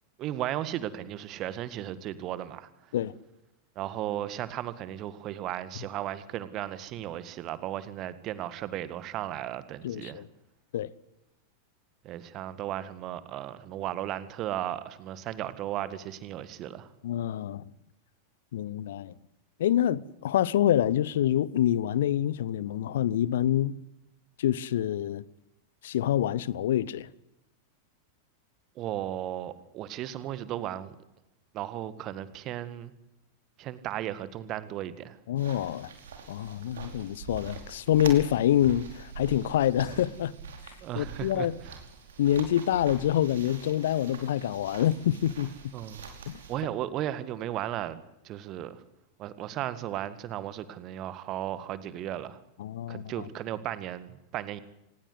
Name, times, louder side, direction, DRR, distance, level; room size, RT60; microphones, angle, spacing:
voice 1, 0.2-2.7 3.8-10.2 12.0-16.9 28.8-31.0 31.5-32.9 33.6-35.2 40.8-41.8 45.7-46.0 46.5-48.8 49.2-52.4 52.9-54.6, right 12 dB, 35° right, 1.8 m, -35 dB
voice 2, 9.8-10.3 10.7-10.9 17.0-17.6 18.5-19.1 19.6-23.7 24.4-25.2 25.8-27.1 35.3-35.9 36.3-40.3 41.0-41.5 42.2-45.5 46.3-46.4 52.6-53.3, left 11 dB, 60° left, 0.9 m, -26 dB
sound 1, 35.4-46.6, right 6 dB, 65° right, 4.9 m, -44 dB
26.0 x 20.0 x 8.2 m
figure-of-eight pair, 90°, 0 cm